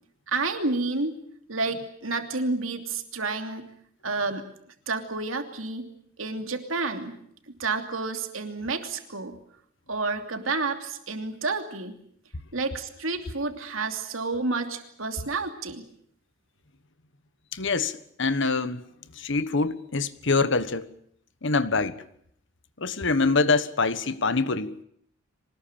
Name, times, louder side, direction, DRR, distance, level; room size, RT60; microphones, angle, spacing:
voice 1, 0.3-1.1 1.5-3.7 4.0-4.5 4.9-5.9 6.2-7.2 7.6-9.4 9.9-12.0 12.5-15.9, right 3 dB, 80° right, 2.9 m, -30 dB
voice 2, 17.5-18.8 19.2-20.9 21.4-22.0 22.8-24.8, left 3 dB, 65° left, 1.4 m, -25 dB
25.0 x 19.5 x 8.9 m
head